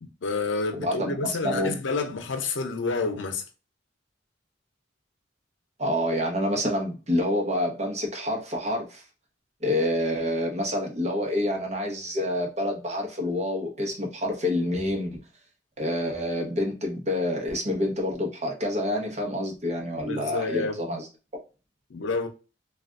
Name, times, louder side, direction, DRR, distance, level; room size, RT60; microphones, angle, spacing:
voice 1, 0.2-3.4 20.0-20.8 21.9-22.3, left 3 dB, 85° left, 0.6 m, -29 dB
voice 2, 0.8-1.1 1.4-1.8 5.8-9.0 9.6-15.2 15.8-21.0, left 1 dB, 40° right, 0.9 m, -27 dB
3.3 x 2.4 x 2.4 m
head